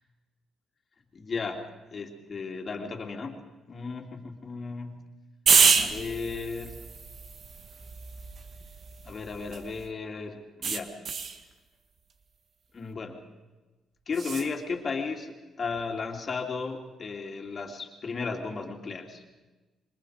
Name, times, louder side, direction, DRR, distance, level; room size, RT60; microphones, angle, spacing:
voice 1, 1.2-1.6 1.9-3.4 3.7-4.9 5.8-6.9 9.0-10.9 12.7-13.2 14.1-19.2, left 4 dB, 40° left, 2 dB, 3.1 m, -35 dB
sound 1, 5.5-9.9 10.6-11.4 14.1-14.5, right 5 dB, 55° right, 1.9 m, -27 dB
27.0 x 24.0 x 5.1 m, 1.2 s
cardioid pair, 90°, 0 cm